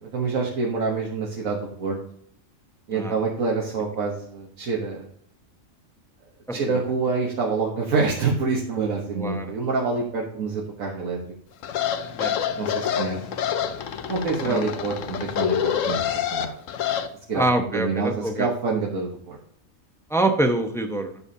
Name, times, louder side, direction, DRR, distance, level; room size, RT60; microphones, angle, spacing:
voice 1, 0.0-2.0 2.9-5.1 6.5-11.2 12.6-13.2 14.1-16.0 16.3-16.5 17.3-17.4 17.7-19.4, right 4 dB, 90° right, -2 dB, 1.7 m, -26 dB
voice 2, 6.5-6.8 9.1-9.5 12.1-12.6 14.4-14.6 17.3-18.5 20.1-21.2, right 1 dB, 5° left, 5 dB, 0.7 m, -25 dB
sound 1, 11.6-17.1, left 9 dB, 75° left, 1.1 m, -27 dB
11.5 x 7.0 x 2.8 m, 0.65 s
omnidirectional pair, 1.4 m